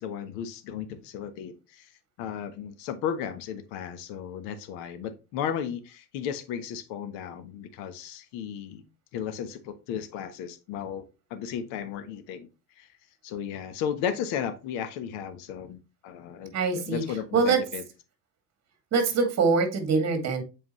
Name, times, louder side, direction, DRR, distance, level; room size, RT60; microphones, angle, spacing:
voice 1, 0.0-1.9 2.2-8.8 9.1-12.5 12.8-12.9 13.2-17.8, left 8 dB, 60° left, 10 dB, 1.3 m, -34 dB
voice 2, 16.5-17.0 17.3-17.6 18.9-20.4, right 4 dB, 30° right, 7 dB, 2.3 m, -23 dB
7.6 x 4.6 x 3.1 m, 0.29 s
supercardioid pair, 115°, 48 cm